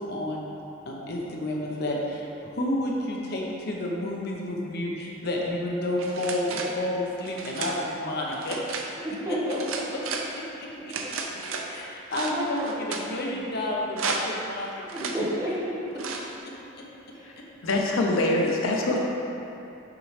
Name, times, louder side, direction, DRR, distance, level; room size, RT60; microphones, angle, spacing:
voice 1, 0.1-0.5 0.9-8.6 10.3-10.4 11.7-14.7, left 1 dB, 55° left, -2 dB, 0.8 m, -30 dB
sound 1, 6.0-6.8 7.2-7.8 8.3-8.9 9.5-10.3 10.9-11.7 12.1-13.1 13.9-14.4 14.9-15.2 16.0-16.3, right 4 dB, 90° right, 0.5 m, -33 dB
voice 2, 9.0-9.8 10.8-11.1 11.5-12.7 14.9-16.0 17.1-17.4 17.7-18.6 18.9-19.0, equal, 15° right, -8 dB, 1.1 m, -33 dB
voice 3, 17.6-19.0, left 2 dB, 90° left, 0 dB, 0.7 m, -24 dB
6.0 x 5.2 x 3.2 m, 2.9 s
head